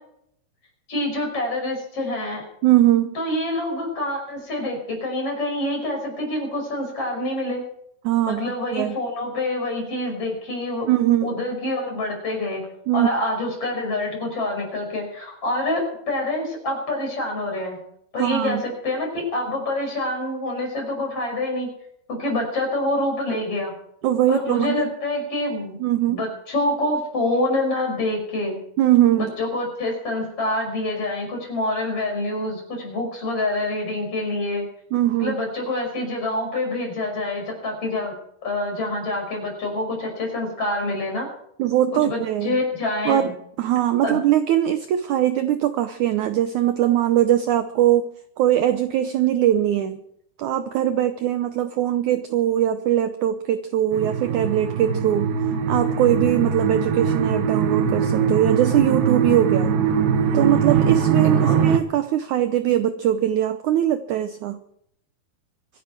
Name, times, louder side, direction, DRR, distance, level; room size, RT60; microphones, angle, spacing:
voice 1, 0.9-2.4 3.1-7.6 8.3-10.9 11.2-12.6 12.9-17.8 18.1-21.7 22.1-23.7 24.3-25.8 26.1-28.6 29.2-34.7 35.2-38.1 38.4-41.3 41.9-43.3 44.0-44.2 61.4-61.5, left 1 dB, 35° left, 1 dB, 6.6 m, -26 dB
voice 2, 2.6-3.1 8.0-8.4 8.7-8.9 10.9-11.3 12.9-13.1 18.2-18.6 24.0-24.8 25.8-26.2 28.8-29.3 34.9-35.4 41.6-42.6 43.0-43.3 43.6-48.0 48.4-50.0 50.4-55.3 55.7-59.7 60.3-64.6, right 12 dB, 90° right, 10 dB, 1.7 m, -21 dB
sound 1, 53.9-61.8, right 7 dB, 70° right, 3.0 m, -21 dB
25.0 x 11.0 x 4.6 m, 0.72 s
omnidirectional pair, 4.5 m